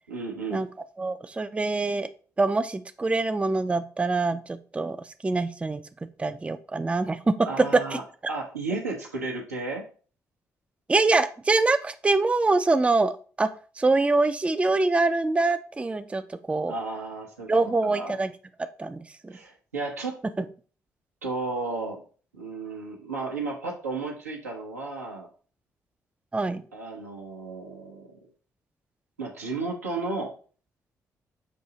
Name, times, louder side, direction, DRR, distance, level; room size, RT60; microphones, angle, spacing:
voice 1, 0.1-0.6 7.5-8.0 8.3-9.8 16.7-17.5 17.9-18.2 19.3-20.2 21.2-22.0 22.3-25.3 26.7-28.2 29.2-30.3, right 3 dB, 85° right, -1 dB, 0.7 m, -33 dB
voice 2, 1.0-2.1 2.4-5.0 5.2-5.8 6.2-7.4 10.9-13.1 13.4-13.5 13.8-16.7 17.5-18.3 18.6-19.3 26.3-26.6, right 3 dB, 15° right, 10 dB, 0.4 m, -24 dB
6.2 x 2.7 x 2.8 m, 0.41 s
figure-of-eight pair, 40°, 8 cm